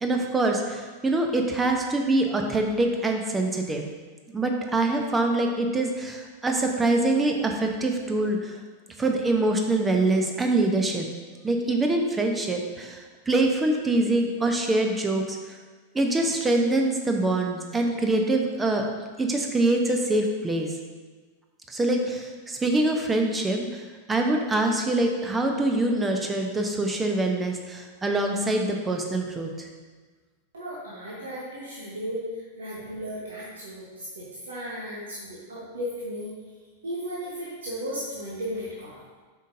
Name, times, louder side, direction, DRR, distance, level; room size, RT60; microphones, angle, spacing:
voice 1, 0.0-3.8 4.3-8.5 9.0-11.1 11.4-15.6 15.9-18.8 19.2-20.7 21.7-23.8 24.1-29.7, right 2 dB, 15° right, 2 dB, 0.7 m, -24 dB
voice 2, 30.5-36.3 36.8-39.0, equal, 65° right, -6 dB, 1.2 m, -35 dB
7.5 x 5.2 x 2.7 m, 1.4 s
figure-of-eight pair, 90°, 0 cm